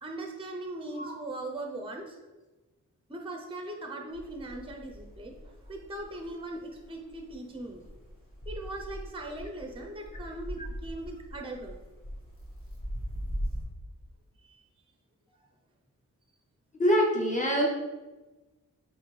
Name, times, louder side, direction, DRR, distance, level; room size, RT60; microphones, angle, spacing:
voice 1, 0.0-2.2 3.1-7.8 8.5-11.8 14.4-14.6 15.3-15.5, right 2 dB, 15° right, 2 dB, 0.6 m, -40 dB
sound 1, 4.1-13.6, equal, 40° left, 1.5 m, -40 dB
voice 2, 16.8-17.7, equal, 20° left, -2 dB, 1.3 m, -25 dB
4.2 x 3.0 x 3.2 m, 1.2 s
cardioid pair, 50°, 33 cm